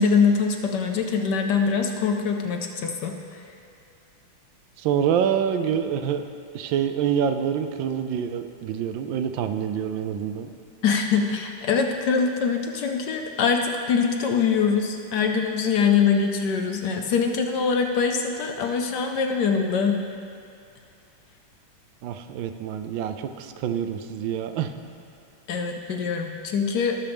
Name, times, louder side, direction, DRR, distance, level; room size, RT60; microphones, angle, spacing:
voice 1, 0.0-3.4 10.8-20.0 25.5-27.0, left 5 dB, 70° left, 3 dB, 1.1 m, -23 dB
voice 2, 4.8-6.3 6.5-10.5 22.0-24.7, right 8 dB, 75° right, 9 dB, 1.2 m, -26 dB
17.5 x 7.1 x 3.4 m, 2.4 s
omnidirectional pair, 2.3 m